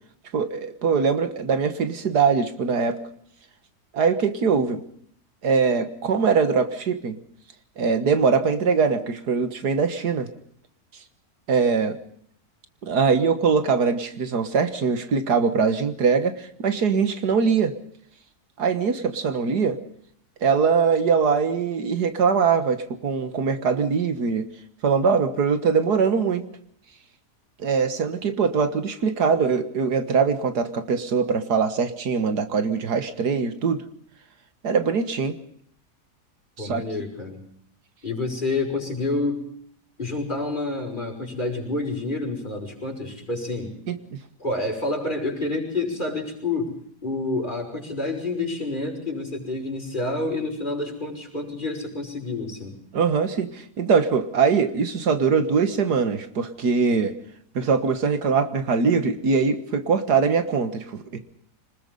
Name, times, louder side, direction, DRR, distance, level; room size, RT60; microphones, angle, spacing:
voice 1, 0.3-3.0 3.9-4.8 5.4-7.2 7.8-10.3 11.5-12.0 12.8-17.7 18.6-19.8 20.4-24.5 24.8-26.4 27.6-33.8 34.6-35.4 36.6-36.8 43.9-44.2 52.9-57.1 57.6-61.2, right 5 dB, 80° right, 10 dB, 2.1 m, -22 dB
voice 2, 36.6-37.4 38.0-39.4 40.0-43.7 44.4-52.8, left 2 dB, 30° left, 1 dB, 5.9 m, -28 dB
25.5 x 20.5 x 5.4 m, 0.65 s
omnidirectional pair, 1.7 m